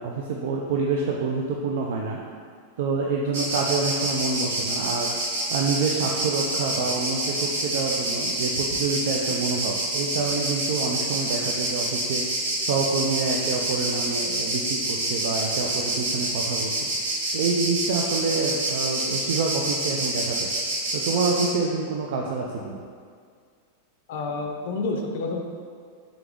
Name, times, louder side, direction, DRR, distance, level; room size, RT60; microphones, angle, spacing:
voice 1, 0.0-2.2 2.8-5.1 5.5-12.2 12.6-16.7 17.3-20.5 20.9-22.8, right 4 dB, 55° right, -1 dB, 0.3 m, -27 dB
Insect, 3.3-21.5, right 2 dB, 80° right, 1.2 m, -27 dB
voice 2, 24.1-25.4, left 3 dB, 50° left, 2 dB, 0.4 m, -29 dB
3.7 x 3.4 x 3.5 m, 2.1 s
supercardioid pair, 180°, 0 cm